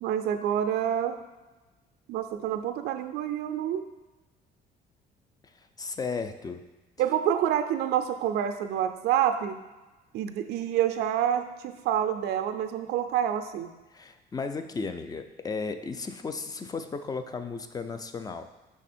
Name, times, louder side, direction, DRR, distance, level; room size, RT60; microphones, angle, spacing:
voice 1, 0.0-1.2 2.1-3.8 7.0-9.6 10.1-13.7, right 10 dB, 75° right, 7 dB, 0.4 m, -27 dB
voice 2, 5.5-6.6 13.9-18.5, left 4 dB, 20° left, 8 dB, 0.4 m, -35 dB
6.1 x 3.6 x 4.2 m, 1.1 s
cardioid pair, 110°, 17 cm